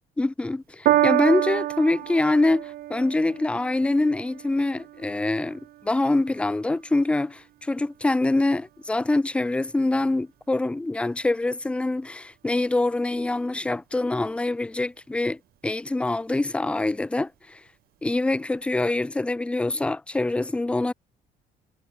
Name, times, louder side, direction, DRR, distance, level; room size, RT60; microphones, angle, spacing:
voice 1, 0.2-17.6 18.0-20.9, left 2 dB, 5° left, 0.4 m, -25 dB
Piano, 0.8-7.4 8.2-8.3, right 14 dB, 65° right, 0.9 m, -29 dB
cardioid pair, 110°, 17 cm